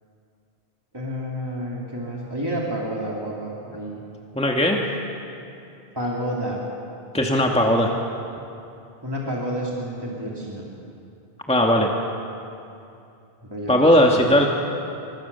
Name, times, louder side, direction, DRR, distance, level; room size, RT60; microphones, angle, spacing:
voice 1, 0.9-4.0 5.9-6.6 9.0-10.6 13.5-14.5, equal, 20° right, -3 dB, 3.1 m, -30 dB
voice 2, 4.4-4.8 7.1-7.9 11.5-11.9 13.7-14.5, left 1 dB, 5° left, 0 dB, 2.0 m, -18 dB
28.5 x 25.5 x 7.0 m, 2.7 s
omnidirectional pair, 1.1 m